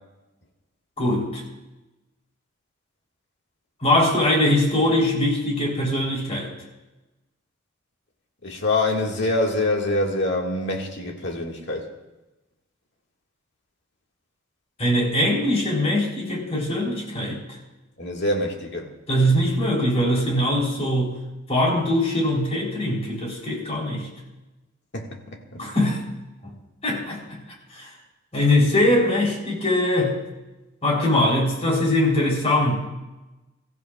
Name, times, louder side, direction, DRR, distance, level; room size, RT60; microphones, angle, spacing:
voice 1, 1.0-1.5 3.8-6.5 14.8-17.4 19.1-21.2 21.5-24.1 25.6-26.0 26.4-26.5 26.8-27.4 27.7-27.9 28.3-30.2 30.8-32.8, left 1 dB, 35° left, -2 dB, 3.6 m, -22 dB
voice 2, 8.4-11.8 18.0-18.9 24.9-25.6, left 2 dB, 60° left, 0 dB, 2.0 m, -25 dB
23.5 x 14.5 x 2.4 m, 1.1 s
head